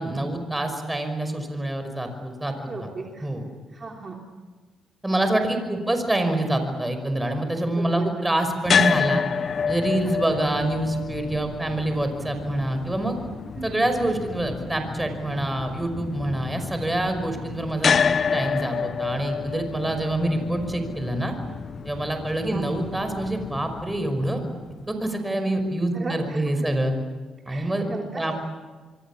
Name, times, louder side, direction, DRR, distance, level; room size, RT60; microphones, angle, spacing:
voice 1, 0.0-2.9 3.2-3.4 5.0-9.2 9.7-13.2 13.6-21.3 21.8-24.4 24.9-26.9 27.5-27.9 28.1-28.3, right 1 dB, 10° right, 7 dB, 5.6 m, -26 dB
voice 2, 2.6-3.3 3.7-4.2 5.7-5.9 7.7-8.1 10.0-10.1 13.5-13.9 22.4-22.7 25.9-26.7 27.5-28.3, right 3 dB, 35° right, 0 dB, 3.2 m, -36 dB
sound 1, 8.7-24.8, left 6 dB, 50° left, 0.7 m, -29 dB
27.0 x 23.5 x 7.4 m, 1.3 s
cardioid pair, 90°, 0 cm